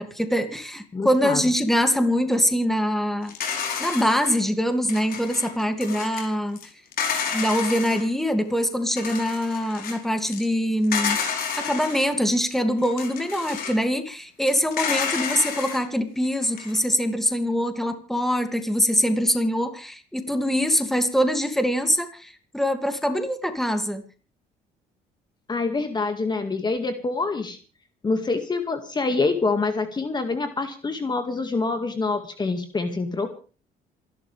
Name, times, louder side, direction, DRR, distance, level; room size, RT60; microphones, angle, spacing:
voice 1, 0.0-3.3 3.8-6.6 7.3-11.2 11.6-24.0, equal, ahead, 7 dB, 2.6 m, -23 dB
voice 2, 0.9-1.4 25.5-27.6 28.0-33.4, left 3 dB, 25° left, 7 dB, 2.1 m, -26 dB
sound 1, 3.3-4.4 4.9-6.2 6.6-6.7 6.9-8.0 8.5-8.6 9.0-10.0 10.3-10.5 10.8-12.1 12.8-13.8 14.4-15.8 16.2-16.8, left 6 dB, 60° left, 4.9 m, -30 dB
27.5 x 12.0 x 3.5 m, 0.37 s
cardioid pair, 110°, 17 cm